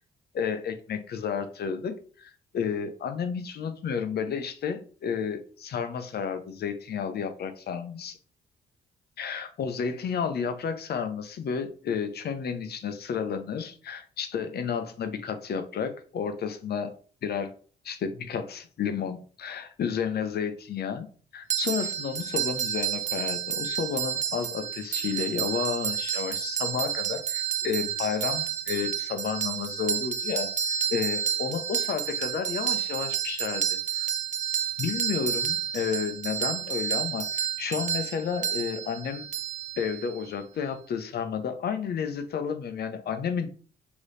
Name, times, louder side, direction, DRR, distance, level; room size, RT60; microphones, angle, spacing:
voice 1, 0.3-8.2 9.2-16.9 17.2-17.5 17.8-21.1 21.3-34.1 34.8-37.3 37.6-39.2 39.8-43.5, left 7 dB, 60° left, 8 dB, 0.7 m, -31 dB
sound 1, 21.5-40.3, right 9 dB, 40° right, 0.4 m, -30 dB
3.3 x 3.0 x 4.0 m, 0.42 s
cardioid pair, 75°, 18 cm